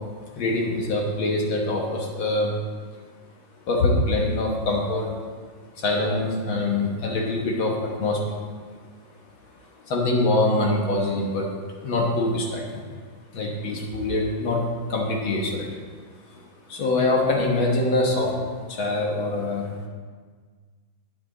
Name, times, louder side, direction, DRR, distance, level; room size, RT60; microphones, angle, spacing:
voice 1, 0.4-2.5 3.7-5.1 5.8-8.4 9.9-11.5 11.8-12.9 13.3-15.8 16.3-16.4 16.7-18.3 18.7-19.7, left 2 dB, 75° left, -1 dB, 2.1 m, -24 dB
9.5 x 9.1 x 4.0 m, 1.5 s
omnidirectional pair, 2.2 m